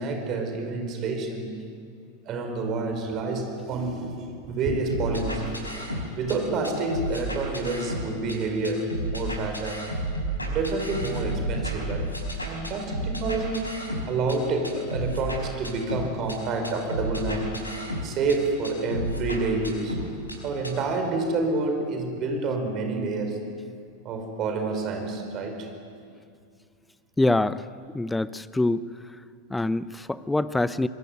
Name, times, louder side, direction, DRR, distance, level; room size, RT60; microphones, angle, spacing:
voice 1, 0.0-1.5 2.3-5.6 6.2-9.9 10.5-12.1 12.5-17.6 18.0-20.0 20.4-23.4 24.0-25.7, right 3 dB, 35° right, 4 dB, 5.2 m, -28 dB
sound 1, 4.9-6.4 6.6-8.4 8.6-14.4 14.6-16.4 16.6-18.4 18.6-20.4 20.6-20.7, right 1 dB, 85° left, 5.0 m, -31 dB
voice 2, 27.2-27.6 27.9-28.9 29.5-30.9, left 2 dB, 5° left, 16 dB, 0.8 m, -25 dB
25.5 x 22.0 x 9.5 m, 2.3 s
figure-of-eight pair, 90°, 0 cm